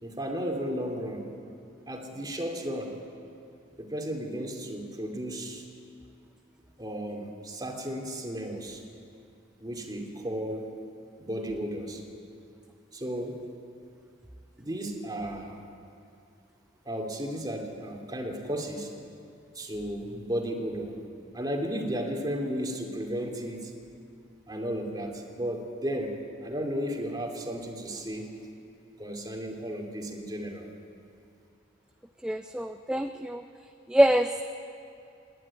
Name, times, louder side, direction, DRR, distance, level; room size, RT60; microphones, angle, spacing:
voice 1, 0.0-1.3 1.9-3.0 3.8-5.6 6.8-8.8 9.6-10.7 11.2-12.0 12.9-13.4 14.6-15.6 16.8-18.9 19.5-21.0 21.3-23.7 24.5-28.3 29.0-30.7, equal, 20° right, 2 dB, 2.6 m, -34 dB
voice 2, 32.2-33.4 33.9-34.3, equal, 5° right, 7 dB, 0.4 m, -24 dB
27.0 x 11.0 x 9.9 m, 2.7 s
head